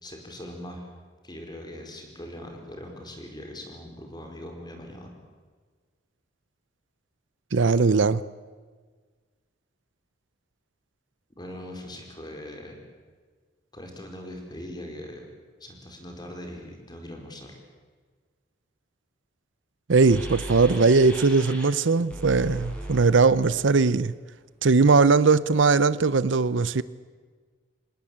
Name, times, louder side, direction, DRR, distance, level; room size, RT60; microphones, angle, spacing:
voice 1, 0.0-0.9 1.2-5.1 11.4-12.8 13.7-15.3 15.6-17.6, left 1 dB, 25° left, 4.8 m, -41 dB
voice 2, 7.5-8.2 19.9-24.1 24.6-26.8, right 4 dB, 75° right, 0.7 m, -20 dB
sound 1, 20.1-21.7 22.1-23.7, right 1 dB, 5° left, 5.5 m, -38 dB
26.0 x 19.0 x 8.8 m
head